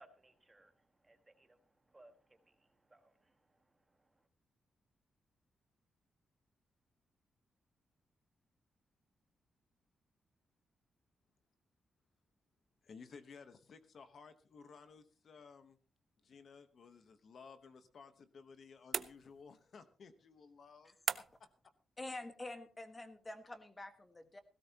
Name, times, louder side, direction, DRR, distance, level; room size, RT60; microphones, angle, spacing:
voice 1, 0.0-4.3, right 2 dB, 15° right, 7 dB, 1.5 m, -66 dB
voice 2, 12.8-15.8 16.2-21.5, left 5 dB, 50° left, 10 dB, 1.0 m, -57 dB
sound 1, 18.9-19.7 21.1-21.6, right 7 dB, 55° right, 0.6 m, -39 dB
voice 3, 22.0-24.4, left 2 dB, 15° left, 8 dB, 1.5 m, -47 dB
17.0 x 16.0 x 2.9 m, 0.38 s
wide cardioid pair, 155°, 0 cm